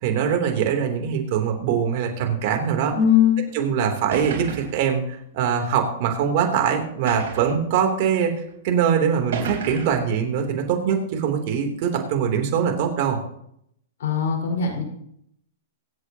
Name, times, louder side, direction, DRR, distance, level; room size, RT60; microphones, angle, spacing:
voice 1, 0.0-3.0 3.5-13.2, right 7 dB, 55° right, 4 dB, 3.2 m, -23 dB
voice 2, 2.9-3.4 14.0-14.8, left 8 dB, 70° left, 0 dB, 4.7 m, -20 dB
sound 1, 3.5-3.6 4.1-4.9 5.8-5.9 7.1-7.6 8.5-8.6 9.3-10.1, right 6 dB, 70° right, 3.7 m, -31 dB
25.0 x 8.5 x 2.9 m, 0.74 s
hypercardioid pair, 125°, 0 cm